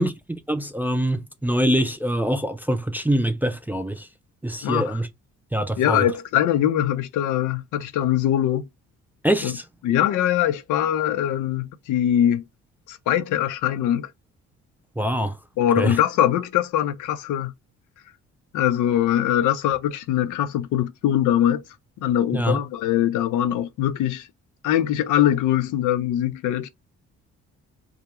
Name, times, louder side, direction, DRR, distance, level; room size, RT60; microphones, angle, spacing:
voice 1, 0.0-4.1 4.4-5.1 5.5-6.0 9.2-9.6 15.0-15.4 15.8-16.0 22.3-22.6, right 1 dB, 5° right, 0.3 m, -24 dB
voice 2, 4.6-5.0 5.8-8.6 9.4-9.5 9.8-12.4 12.9-14.1 15.6-17.5 18.5-21.6 22.0-24.3 24.6-26.7, left 11 dB, 80° left, 0.5 m, -22 dB
2.4 x 2.0 x 2.9 m
cardioid pair, 90°, 30 cm